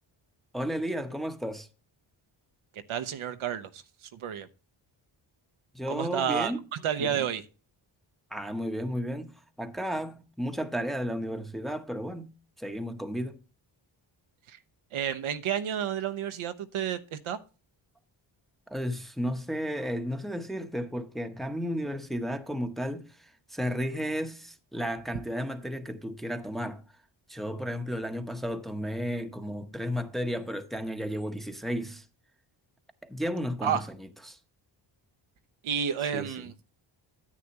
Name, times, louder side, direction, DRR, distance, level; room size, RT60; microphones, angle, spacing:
voice 1, 0.5-1.7 5.7-6.6 7.0-7.2 8.3-13.4 18.7-26.8 27.3-32.0 33.0-33.8 34.3-34.4 36.1-36.3, equal, ahead, 0.9 m, -33 dB
voice 2, 2.7-4.5 5.9-7.4 14.5-14.6 14.9-17.4 33.6-33.8 35.6-36.5, right 8 dB, 75° right, 0.9 m, -31 dB
9.9 x 8.5 x 2.9 m
cardioid pair, 70°, 49 cm